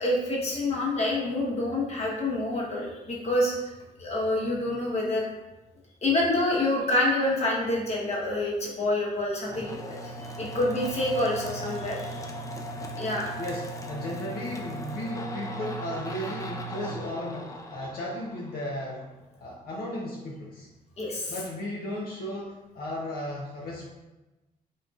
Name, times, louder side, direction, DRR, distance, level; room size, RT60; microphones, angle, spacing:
voice 1, 0.0-3.7 4.0-5.3 6.0-12.3 13.0-13.4 21.0-21.3, left 1 dB, 40° left, -4 dB, 1.1 m, -27 dB
sound 1, 9.5-19.0, right 1 dB, 20° left, 0.4 m, -38 dB
voice 2, 13.4-19.1 19.3-20.7 21.3-23.9, left 1 dB, 70° left, -3 dB, 0.6 m, -35 dB
4.0 x 3.7 x 2.4 m, 1.1 s
cardioid pair, 115°, 16 cm